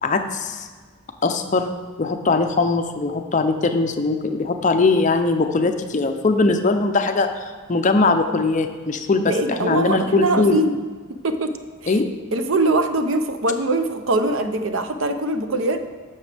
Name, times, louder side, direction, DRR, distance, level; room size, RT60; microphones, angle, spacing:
voice 1, 0.0-0.7 1.2-1.7 2.0-10.6 11.9-12.1, left 3 dB, 35° left, 7 dB, 0.5 m, -20 dB
voice 2, 9.2-10.7 11.1-11.5 11.8-11.9 12.3-15.8, right 2 dB, 70° right, 8 dB, 0.7 m, -22 dB
11.0 x 7.2 x 3.4 m, 1.5 s
head